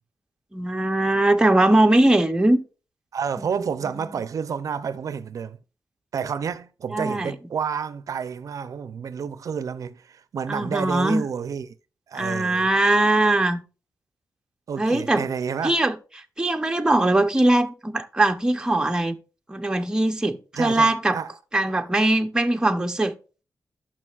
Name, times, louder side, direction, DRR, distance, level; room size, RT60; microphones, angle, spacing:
voice 1, 0.5-2.6 3.4-3.5 3.9-4.0 6.9-7.4 10.5-11.3 12.1-13.6 14.8-15.3 15.6-15.9 16.4-19.2 19.5-21.2 21.5-23.2, right 1 dB, 10° right, 0.6 m, -21 dB
voice 2, 3.1-5.6 6.1-11.7 12.1-12.7 14.7-15.8 20.5-21.3 21.7-21.8, right 6 dB, 65° right, 0.5 m, -30 dB
11.0 x 5.9 x 2.4 m
wide cardioid pair, 125°, 6 cm